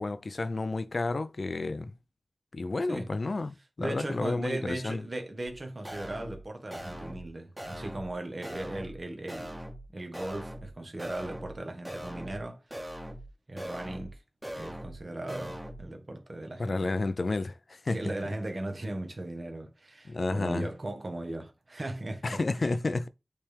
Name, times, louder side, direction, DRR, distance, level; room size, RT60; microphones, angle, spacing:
voice 1, 0.0-1.9 2.5-5.0 16.6-18.1 20.1-20.7 22.2-23.1, left 3 dB, 70° left, 0.5 m, -31 dB
voice 2, 3.8-12.8 13.5-14.2 14.5-16.9 17.9-22.6, right 1 dB, 50° right, 1.2 m, -38 dB
sound 1, 5.5-5.6 5.9-6.4 6.7-7.3 7.6-8.1 8.4-9.0 9.3-9.9 10.1-10.7 11.0-11.6 11.9-12.4 12.7-13.3 13.6-14.1 14.4-15.0 15.3-15.8, equal, 20° right, 1.5 m, -41 dB
8.5 x 3.5 x 3.4 m
wide cardioid pair, 70°, 0 cm